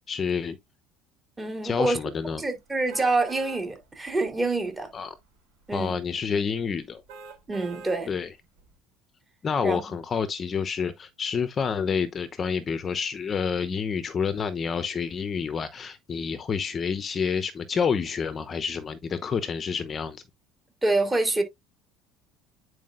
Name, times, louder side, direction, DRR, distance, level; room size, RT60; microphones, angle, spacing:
voice 1, 0.1-0.6 1.6-2.4 4.9-5.2 5.7-7.0 8.1-8.3 9.4-20.2, left 6 dB, 30° left, 0.8 m, -28 dB
voice 2, 1.4-2.0 2.4-4.9 5.7-5.9 7.5-8.1 9.6-9.8 20.8-21.4, right 2 dB, 15° right, 2.6 m, -26 dB
sound 1, 2.9-3.6 4.2-4.3 7.1-8.0 8.6-8.7, right 5 dB, 80° right, 3.2 m, -43 dB
9.4 x 4.8 x 2.5 m
supercardioid pair, 120°, 0 cm